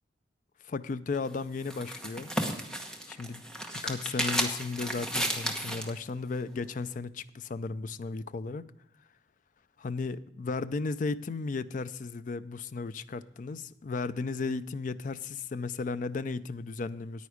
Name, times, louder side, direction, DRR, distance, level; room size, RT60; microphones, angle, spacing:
voice 1, 0.6-2.3 3.1-3.4 3.8-8.7 9.8-17.3, left 4 dB, 45° left, 0.4 m, -35 dB
sound 1, 1.1-6.0, equal, 5° left, 1.0 m, -33 dB
9.4 x 9.4 x 4.9 m
head